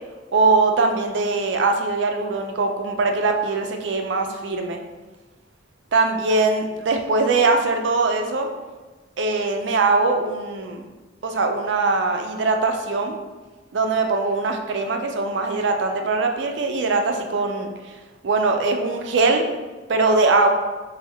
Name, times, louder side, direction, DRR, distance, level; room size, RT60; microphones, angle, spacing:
voice 1, 0.3-4.8 5.9-8.5 9.2-10.9 11.2-13.2 13.7-18.0 18.2-19.4 19.9-20.5, right 3 dB, 75° right, 4 dB, 0.5 m, -21 dB
3.5 x 3.1 x 3.4 m, 1.3 s
head